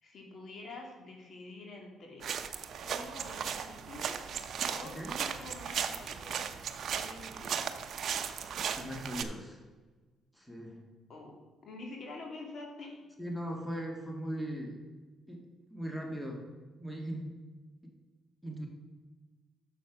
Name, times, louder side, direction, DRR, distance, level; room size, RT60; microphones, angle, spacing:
voice 1, 0.0-2.3 2.7-4.3 4.7-7.8 11.1-13.0, left 2 dB, 55° left, 1 dB, 2.2 m, -47 dB
sound 1, 2.2-9.2, right 7 dB, 60° right, 0.7 m, -36 dB
voice 2, 8.8-9.6 10.3-10.8 13.2-14.8 15.3-15.4 15.7-16.4 16.8-17.3 18.4-18.7, equal, 5° left, 1 dB, 1.8 m, -39 dB
6.9 x 6.6 x 5.9 m, 1.3 s
cardioid pair, 80°, 0 cm